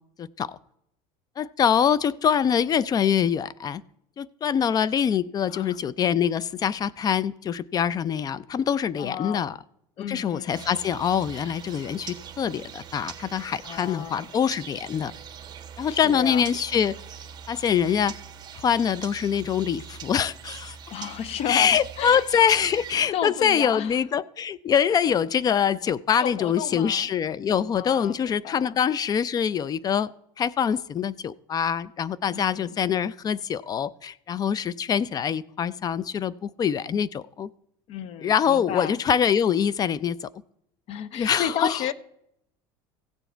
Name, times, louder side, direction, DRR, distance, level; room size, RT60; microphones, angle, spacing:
voice 1, 0.2-0.6 1.4-3.8 4.2-9.6 10.1-15.1 15.8-17.0 17.5-18.1 18.6-20.8 21.5-30.1 30.4-37.5 38.2-40.3 41.1-41.8, left 8 dB, 30° left, 0.4 m, -24 dB
voice 2, 5.5-5.8 9.0-9.5 10.0-10.6 13.6-14.3 15.9-16.4 20.9-22.2 22.5-22.7 23.1-24.0 26.1-27.1 27.7-28.8 32.3-32.8 37.9-39.0 40.9-41.9, left 10 dB, 50° left, 0.8 m, -33 dB
sound 1, 10.5-23.0, right 8 dB, 35° right, 1.4 m, -42 dB
15.5 x 7.1 x 4.4 m
supercardioid pair, 110°, 13 cm